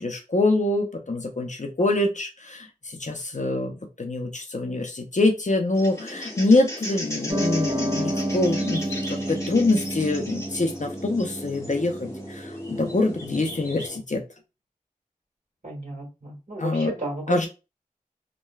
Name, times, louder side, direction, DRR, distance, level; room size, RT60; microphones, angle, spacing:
voice 1, 0.0-14.2 16.6-16.9 17.3-17.5, left 2 dB, 55° left, 4 dB, 0.5 m, -25 dB
sound 1, 5.7-14.0, left 1 dB, 20° left, 0.8 m, -37 dB
Piano, 7.3-13.8, right 1 dB, 30° right, 0.9 m, -31 dB
voice 2, 15.6-17.4, right 1 dB, 60° right, -3 dB, 1.6 m, -33 dB
3.1 x 2.2 x 2.2 m, 0.29 s
wide cardioid pair, 45°, 15 cm